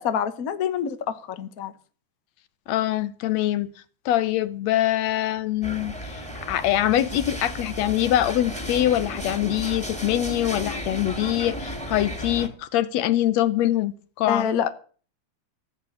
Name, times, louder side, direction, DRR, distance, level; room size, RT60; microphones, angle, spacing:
voice 1, 0.0-1.7 14.3-14.7, left 8 dB, 85° left, 0.7 m, -26 dB
voice 2, 2.7-3.7 4.1-14.5, left 13 dB, 70° left, 1.9 m, -24 dB
sound 1, 5.6-12.5, equal, 5° left, 1.8 m, -34 dB
15.5 x 8.3 x 8.4 m
omnidirectional pair, 3.5 m